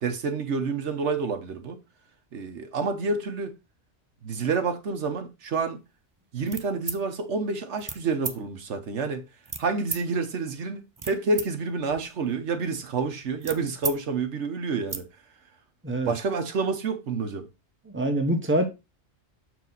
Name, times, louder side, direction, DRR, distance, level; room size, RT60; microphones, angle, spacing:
voice 1, 0.0-1.8 2.3-3.5 4.2-5.8 6.3-9.2 9.6-15.1 16.1-17.5, right 4 dB, 85° right, 1.3 m, -28 dB
sound 1, 6.5-7.0 7.8-8.0 8.2-8.4 9.4-10.0 10.7-11.5 11.8-14.0 14.3-14.4 14.7-15.0, right 4 dB, 25° right, 0.4 m, -35 dB
voice 2, 17.9-18.6, right 1 dB, 10° right, 1.0 m, -24 dB
6.7 x 4.7 x 3.9 m
omnidirectional pair, 1.2 m